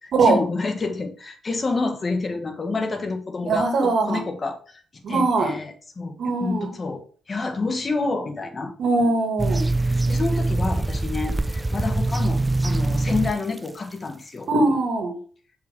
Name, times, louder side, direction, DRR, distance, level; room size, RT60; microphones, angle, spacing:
voice 1, 0.0-4.8 5.1-6.1 6.4-8.7 9.7-14.5, left 3 dB, 35° left, 6 dB, 1.5 m, -28 dB
voice 2, 3.4-4.2 5.0-5.5 6.2-6.7 8.8-9.6 14.5-15.1, right 3 dB, 70° right, 2 dB, 2.3 m, -21 dB
sound 1, 9.4-13.3 13.6-13.7, right 2 dB, 15° right, 0.4 m, -23 dB
6.9 x 5.4 x 3.6 m, 0.42 s
cardioid pair, 90°, 0 cm